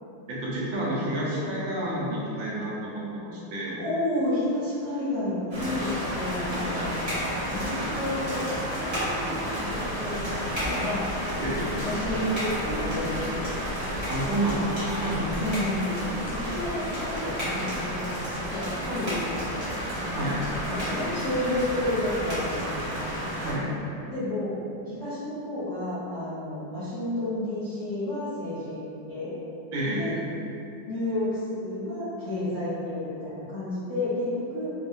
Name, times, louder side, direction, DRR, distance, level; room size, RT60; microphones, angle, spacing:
voice 1, 0.3-3.8 11.4-11.7 14.1-15.3 20.1-20.4 23.4-23.7 29.7-30.2, right 1 dB, 85° right, -5 dB, 1.3 m, -29 dB
voice 2, 3.8-7.0 7.5-8.4 8.8-11.0 11.8-13.5 15.4-18.1 18.5-19.7 20.6-23.1 24.1-24.5 24.9-29.3 30.0-30.1 30.9-34.7, left 1 dB, 55° left, -13 dB, 1.0 m, -31 dB
sound 1, 5.5-23.5, equal, 45° right, 0.4 m, -31 dB
3.2 x 2.1 x 2.5 m, 2.8 s
omnidirectional pair, 2.1 m